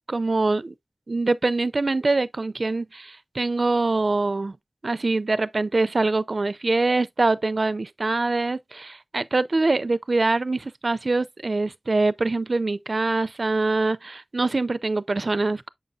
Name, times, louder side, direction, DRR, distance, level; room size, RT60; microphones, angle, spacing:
voice 1, 0.1-0.7 1.1-4.6 4.8-15.7, right 3 dB, 60° right, 0.4 m, -24 dB
7.5 x 5.4 x 2.4 m
wide cardioid pair, 45°, 0 cm